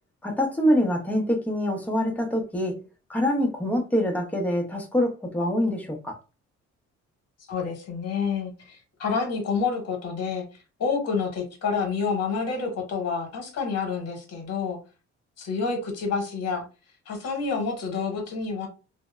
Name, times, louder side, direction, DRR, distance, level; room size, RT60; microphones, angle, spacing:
voice 1, 0.2-2.8 3.1-6.2, equal, 5° left, 0.7 m, -25 dB
voice 2, 7.5-10.5 10.8-14.8 15.4-16.6 17.1-18.7, left 5 dB, 55° left, 1.1 m, -28 dB
2.7 x 2.0 x 2.2 m
cardioid pair, 90°, 30 cm